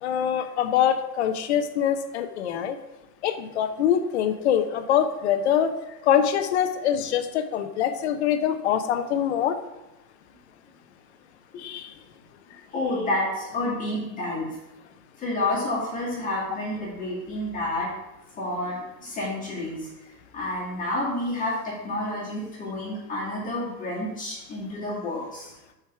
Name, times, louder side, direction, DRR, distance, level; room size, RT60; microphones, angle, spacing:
voice 1, 0.0-2.8 3.2-5.7 6.0-9.6 11.6-11.9, left 9 dB, 45° left, 8 dB, 0.6 m, -24 dB
voice 2, 12.7-14.5 15.2-17.9 18.4-19.9 20.3-25.5, left 1 dB, 15° left, -7 dB, 2.3 m, -29 dB
7.9 x 4.7 x 5.7 m, 0.99 s
supercardioid pair, 170°, 50 cm